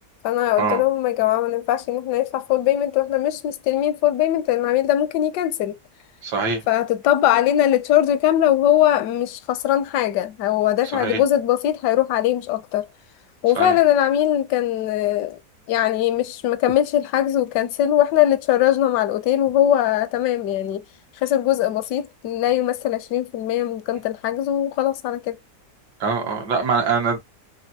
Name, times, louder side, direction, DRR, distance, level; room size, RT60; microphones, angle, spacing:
voice 1, 0.2-5.7 6.7-12.9 13.4-15.4 15.7-20.8 21.2-25.4, left 12 dB, 80° left, 1.2 m, -21 dB
voice 2, 6.2-6.6 10.9-11.2 13.6-13.8 26.0-27.2, right 5 dB, 80° right, 1.7 m, -23 dB
5.6 x 2.3 x 2.7 m
omnidirectional pair, 1.8 m